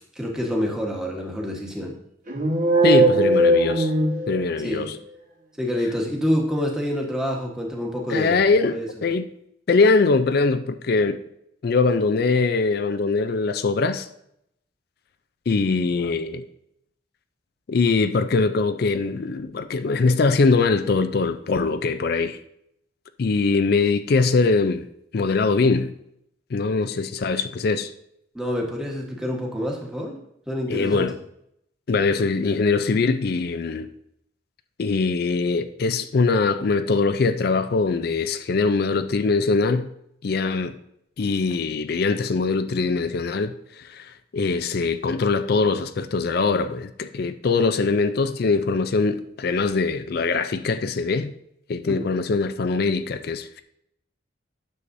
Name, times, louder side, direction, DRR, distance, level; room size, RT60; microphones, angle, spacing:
voice 1, 0.1-1.9 4.6-4.9 5.6-8.4 8.7-8.9 28.3-30.2 30.5-31.1 51.9-52.0, equal, 5° right, 1.2 m, -27 dB
sound 1, 2.3-4.8, right 1 dB, 45° right, 1.2 m, -19 dB
voice 2, 2.8-3.9 4.3-5.0 8.1-9.3 9.7-11.2 11.6-14.1 15.5-16.4 17.7-22.4 23.2-24.9 25.1-25.9 26.5-27.9 30.7-31.1 31.9-33.9 34.8-39.9 40.2-40.7 41.2-51.3 51.7-53.6, left 4 dB, 55° left, 0.4 m, -22 dB
9.7 x 6.9 x 2.6 m
head